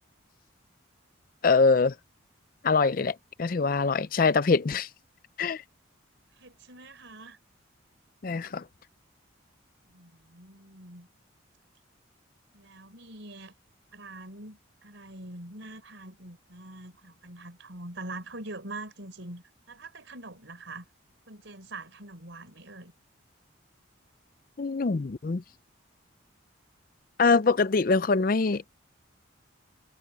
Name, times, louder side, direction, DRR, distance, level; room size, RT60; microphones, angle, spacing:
voice 1, 1.4-1.9 2.6-4.9 5.4-5.6 8.2-8.6 24.6-25.4 27.2-28.6, left 4 dB, 45° left, 0.5 m, -24 dB
voice 2, 6.4-7.4 9.9-11.1 12.5-13.5 13.9-20.8 21.3-22.9, right 2 dB, 65° right, 4.5 m, -44 dB
head